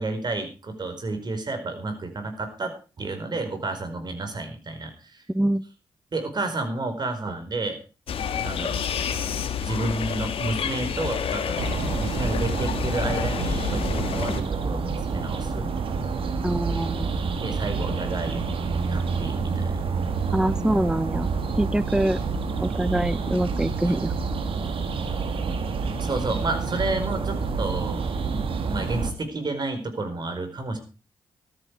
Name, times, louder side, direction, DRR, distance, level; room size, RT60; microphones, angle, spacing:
voice 1, 0.0-5.2 6.1-7.8 8.4-8.8 9.6-15.7 17.4-18.6 18.9-19.8 22.1-22.3 23.8-23.9 25.8-28.0 28.3-30.8, right 2 dB, 45° right, 7 dB, 4.7 m, -31 dB
voice 2, 5.3-5.6 16.4-17.1 20.3-21.3 21.6-22.2 22.6-24.1, right 1 dB, 5° right, 18 dB, 0.7 m, -24 dB
sound 1, 8.1-14.4, left 7 dB, 70° left, 1.8 m, -29 dB
sound 2, 11.6-29.1, right 4 dB, 65° right, 2.1 m, -28 dB
13.5 x 13.0 x 4.8 m, 0.34 s
supercardioid pair, 45°, 10 cm